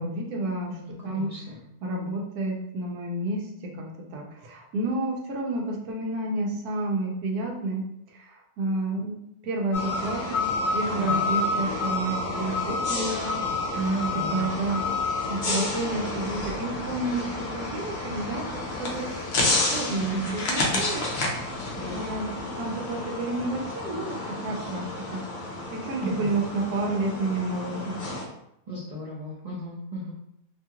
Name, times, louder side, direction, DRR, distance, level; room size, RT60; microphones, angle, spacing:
voice 1, 0.0-1.3 1.8-9.2 9.4-13.8 14.3-14.9 15.2-19.0 19.4-21.0 21.7-22.3 22.5-25.2 25.7-28.0, right 2 dB, 80° right, 0 dB, 1.1 m, -30 dB
voice 2, 0.7-1.6 10.9-11.7 13.7-14.5 20.1-20.2 20.7-20.9 21.8-22.1 26.0-26.4 28.7-30.1, right 2 dB, 60° right, -8 dB, 0.4 m, -34 dB
sound 1, 9.7-28.2, left 2 dB, 70° left, 0.4 m, -30 dB
2.9 x 2.3 x 2.8 m, 0.79 s
omnidirectional pair, 1.6 m